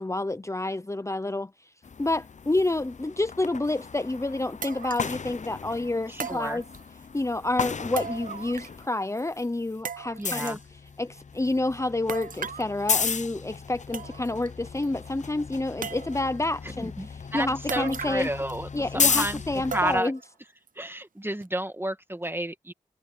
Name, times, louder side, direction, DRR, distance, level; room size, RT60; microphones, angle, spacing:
voice 1, 0.0-1.7 2.0-6.6 7.1-10.6 11.0-18.3 18.7-20.2, left 2 dB, 20° left, 0.7 m, -29 dB
sound 1, 1.8-8.9 9.2-20.0, left 5 dB, 65° left, 0.6 m, -34 dB
sound 2, 3.8-3.9 4.6-5.2 6.2-7.1 8.0-8.9 9.2-9.3 9.9-10.6 12.1-12.7 13.5-13.6 13.9-14.5 14.8-14.9 15.8-16.4 17.7-18.5 18.8-18.9 19.7-20.2 20.7-20.8 21.4-21.5, right 6 dB, 85° right, 0.7 m, -37 dB
voice 2, 6.1-6.6 10.2-10.6 16.6-20.1 20.8-22.7, right 1 dB, 15° right, 1.9 m, -32 dB
cardioid pair, 45°, 14 cm